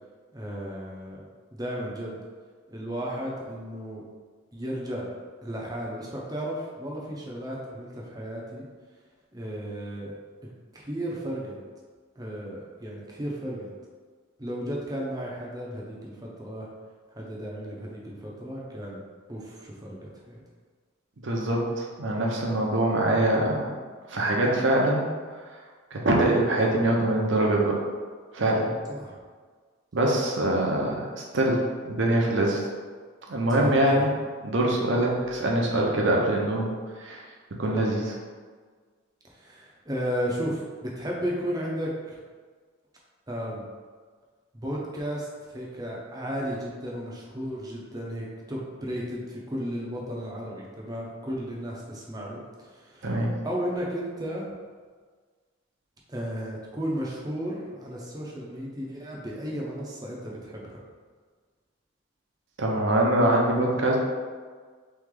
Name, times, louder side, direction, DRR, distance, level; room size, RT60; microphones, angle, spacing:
voice 1, 0.3-1.2 1.5-2.2 2.7-4.0 4.5-5.1 5.4-8.7 9.3-10.2 10.7-11.6 12.2-13.7 14.4-16.7 17.1-19.0 19.3-20.4 28.9-29.2 33.6-34.1 39.3-42.2 43.3-43.6 44.5-53.1 53.4-54.5 56.1-60.8, equal, 20° right, -3 dB, 0.7 m, -34 dB
voice 2, 21.2-23.7 24.1-25.1 25.9-27.8 28.3-28.7 29.9-32.6 33.3-34.1 34.4-36.7 37.0-37.2 37.6-38.2 53.0-53.3 62.6-64.0, right 1 dB, 65° right, -1 dB, 0.8 m, -24 dB
3.6 x 3.2 x 3.7 m, 1.6 s
head